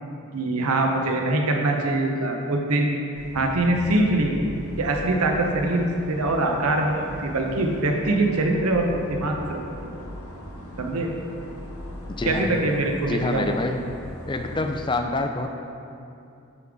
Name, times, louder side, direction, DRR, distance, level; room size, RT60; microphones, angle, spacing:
voice 1, 0.3-3.0 3.3-4.3 4.8-9.6 10.8-11.1 12.2-13.4, right 2 dB, 85° right, 2 dB, 0.8 m, -23 dB
sound 1, 3.1-14.9, equal, 85° left, 1.1 m, -40 dB
voice 2, 12.1-12.5 13.0-13.8 14.3-15.5, left 2 dB, 20° left, 5 dB, 0.3 m, -26 dB
8.2 x 5.3 x 3.6 m, 2.6 s
head